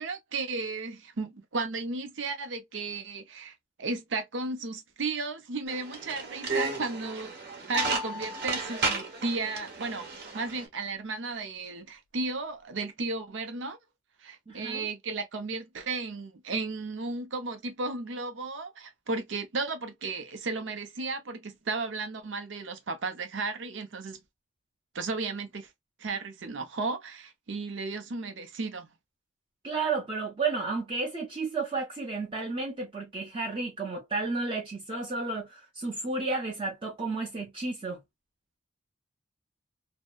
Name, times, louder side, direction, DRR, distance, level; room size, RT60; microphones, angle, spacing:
voice 1, 0.0-7.4 7.7-13.8 14.2-24.2 24.9-25.7 26.0-28.9, right 3 dB, 80° right, 0.6 m, -34 dB
sound 1, 5.7-10.6, right 3 dB, 60° right, 0.9 m, -33 dB
sound 2, 7.7-9.2, left 5 dB, 75° left, 0.4 m, -38 dB
voice 2, 14.5-14.9 29.6-38.0, right 3 dB, 30° right, 0.6 m, -32 dB
2.7 x 2.0 x 2.2 m
head